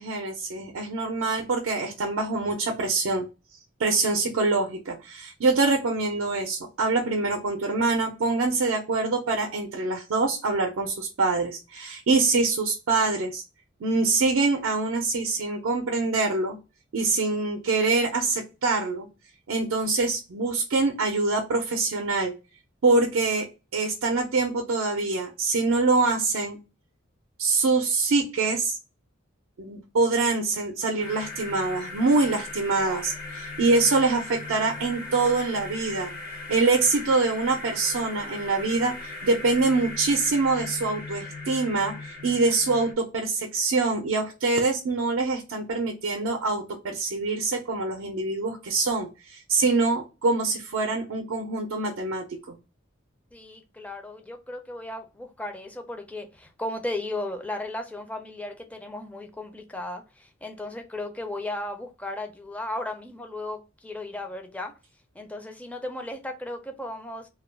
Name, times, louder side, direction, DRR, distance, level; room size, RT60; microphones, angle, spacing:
voice 1, 0.0-3.3 3.8-13.4 13.8-16.6 16.9-19.1 19.5-22.3 22.8-23.5 23.7-26.6 27.4-28.8 29.6-36.1 36.5-52.6, right 3 dB, 80° right, 0.5 m, -25 dB
sound 1, 31.0-42.9, left 3 dB, 50° left, 0.6 m, -38 dB
voice 2, 53.3-64.7 65.1-67.3, left 1 dB, 5° left, 0.4 m, -35 dB
2.3 x 2.1 x 3.2 m
head